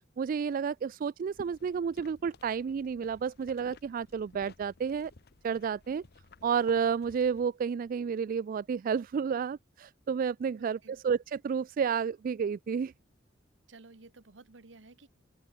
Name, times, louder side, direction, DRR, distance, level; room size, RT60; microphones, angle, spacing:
voice 1, 0.2-5.1 5.4-6.0 6.4-12.9, right 6 dB, 45° right, 0.3 m, -31 dB
sound 1, 1.3-7.5, left 3 dB, 60° left, 0.8 m, -55 dB
voice 2, 10.6-11.0 13.7-15.1, right 3 dB, 70° right, 1.2 m, -54 dB
open air
head